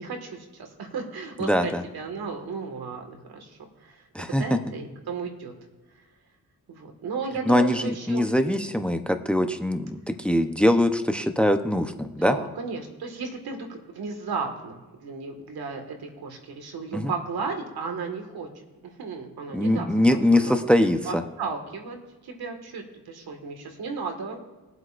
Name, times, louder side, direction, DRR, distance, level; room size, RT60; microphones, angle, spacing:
voice 1, 0.0-4.0 4.4-5.5 6.7-8.3 12.2-18.5 18.8-20.7 21.0-22.0 22.2-24.4, right 4 dB, 80° right, 4 dB, 1.9 m, -34 dB
voice 2, 1.4-1.8 4.1-4.4 7.5-12.4 16.9-17.1 19.5-21.2, left 1 dB, 5° left, 7 dB, 0.8 m, -22 dB
21.5 x 7.9 x 2.5 m, 1.2 s
cardioid pair, 80°, 37 cm